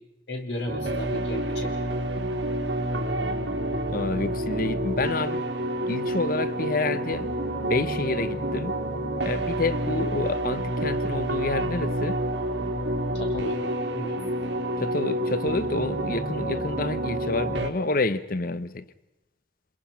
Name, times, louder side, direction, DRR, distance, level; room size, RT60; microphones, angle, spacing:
voice 1, 0.3-1.8 13.1-13.6 13.9-14.2, left 1 dB, 75° left, 4.4 m, -34 dB
sound 1, 0.7-17.7, right 1 dB, 90° right, 2.9 m, -28 dB
voice 2, 3.9-5.4 5.9-7.3 7.6-8.7 9.2-12.2 14.8-18.8, left 3 dB, 55° left, 1.0 m, -28 dB
28.5 x 21.5 x 5.8 m
head